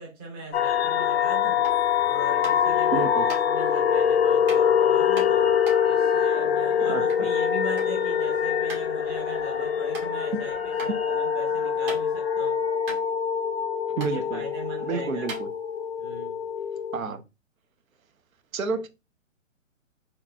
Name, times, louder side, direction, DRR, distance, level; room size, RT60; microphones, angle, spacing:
voice 1, 0.0-1.7 2.0-5.5 5.8-10.5 10.8-12.6 14.0-15.3 16.0-16.4, right 2 dB, 10° right, 0.5 m, -40 dB
sound 1, 0.5-17.0, left 8 dB, 50° left, 0.5 m, -24 dB
sound 2, 1.6-1.9 2.4-2.7 3.3-3.4 4.5-4.7 5.2-7.3 7.5-8.0 8.2-8.3 8.7-8.9 9.3-9.4 9.9-10.1 10.8-10.9 11.3-12.3 12.6-12.7 12.8-13.7 14.0-14.1 14.8-14.9 15.2-16.0, right 3 dB, 40° right, 1.6 m, -38 dB
voice 2, 2.9-3.3 6.9-7.0 13.9-14.4 14.8-15.5 16.9-17.2 18.5-18.9, right 5 dB, 80° right, 0.7 m, -29 dB
3.7 x 3.0 x 2.3 m
hypercardioid pair, 140°, 40 cm